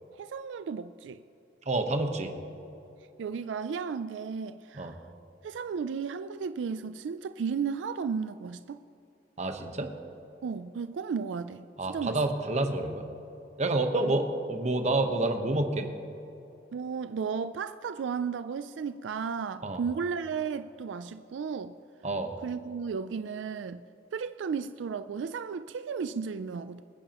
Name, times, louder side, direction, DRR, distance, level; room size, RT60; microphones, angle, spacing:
voice 1, 0.1-1.2 3.2-5.0 5.4-8.8 10.4-12.2 14.0-14.1 16.7-21.7 22.4-23.8 24.1-26.8, right 6 dB, 85° right, 11 dB, 0.4 m, -34 dB
voice 2, 1.7-2.3 4.7-4.9 9.4-9.9 11.8-13.0 13.6-15.9 19.6-19.8 22.0-22.3, right 2 dB, 40° right, 5 dB, 1.1 m, -28 dB
24.5 x 10.5 x 3.0 m, 2.8 s
head